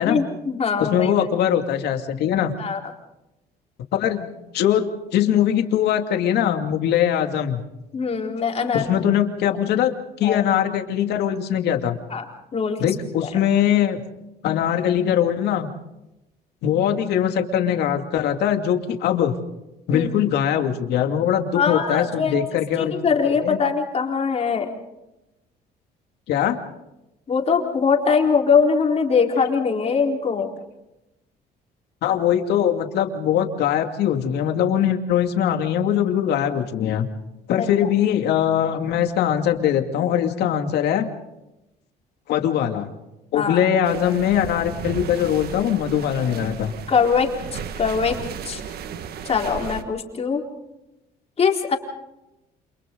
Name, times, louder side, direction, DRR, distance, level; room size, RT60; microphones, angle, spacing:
voice 1, 0.0-1.1 2.6-2.8 7.9-8.9 10.2-10.4 12.1-12.3 12.5-12.9 19.9-20.1 21.5-22.3 22.8-24.7 27.3-30.5 37.6-37.7 43.3-43.7 46.9-48.2 48.4-48.6 49.2-50.4 51.4-51.8, left 5 dB, 40° left, 1 dB, 4.1 m, -22 dB
voice 2, 0.8-2.5 3.9-4.3 4.5-7.6 8.7-9.9 10.2-12.0 12.8-14.0 14.4-15.7 16.6-19.3 19.9-22.9 23.4-23.6 26.3-26.6 29.8-29.9 32.0-37.1 37.5-41.1 42.3-42.9 43.3-46.7, left 10 dB, 75° left, 5 dB, 2.5 m, -21 dB
sound 1, 43.8-49.8, right 7 dB, 70° right, 1.7 m, -34 dB
29.5 x 27.5 x 3.9 m, 0.93 s
cardioid pair, 110°, 17 cm